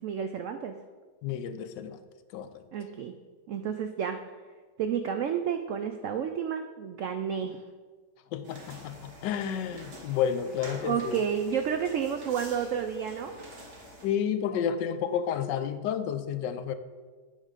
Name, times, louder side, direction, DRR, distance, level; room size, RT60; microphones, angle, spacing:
voice 1, 0.0-0.7 2.7-3.1 3.5-4.2 4.8-7.6 10.8-13.3, right 8 dB, 85° right, 7 dB, 0.6 m, -30 dB
voice 2, 1.2-2.0 2.3-2.6 8.3-11.2 14.0-16.7, left 8 dB, 85° left, 10 dB, 1.3 m, -31 dB
sound 1, 8.4-14.1, right 1 dB, 60° right, 1.9 m, -47 dB
9.7 x 3.7 x 6.5 m, 1.4 s
omnidirectional pair, 1.9 m